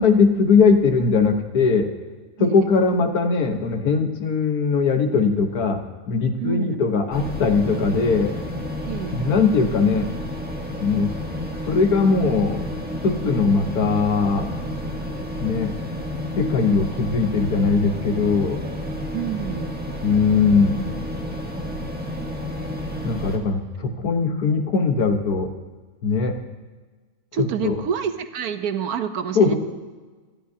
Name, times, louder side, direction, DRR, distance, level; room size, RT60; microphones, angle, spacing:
voice 1, 0.0-1.9 2.4-8.3 9.1-10.1 10.8-11.1 11.7-12.6 13.0-14.5 15.4-15.7 16.4-18.6 20.0-20.9 23.0-25.5 26.0-26.4 27.3-27.8 29.4-29.6, left 4 dB, 85° left, 5 dB, 1.7 m, -20 dB
voice 2, 6.4-6.8 8.8-9.2 19.1-19.8 27.3-29.5, right 8 dB, 80° right, 9 dB, 1.3 m, -28 dB
sound 1, 7.1-23.4, left 1 dB, 5° right, 1.4 m, -31 dB
24.0 x 12.5 x 2.8 m, 1.4 s
omnidirectional pair, 1.6 m